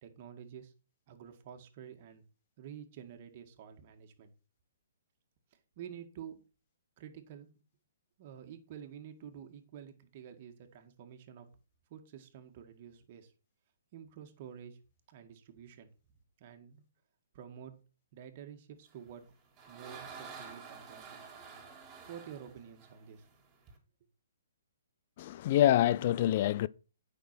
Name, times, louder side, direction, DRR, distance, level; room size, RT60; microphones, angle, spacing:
voice 1, 0.0-0.7 1.1-2.2 2.6-4.3 5.5-6.4 7.0-7.5 8.2-11.5 11.9-13.3 13.9-14.8 15.1-15.9 16.4-16.8 17.3-17.7 18.1-19.3 19.7-21.2 22.1-23.3, right 9 dB, 45° right, 2.0 m, -49 dB
sound 1, 19.1-23.8, right 5 dB, 25° right, 3.5 m, -50 dB
voice 2, 25.2-26.7, left 12 dB, 45° left, 0.5 m, -26 dB
9.3 x 6.1 x 5.9 m
hypercardioid pair, 135°, 0 cm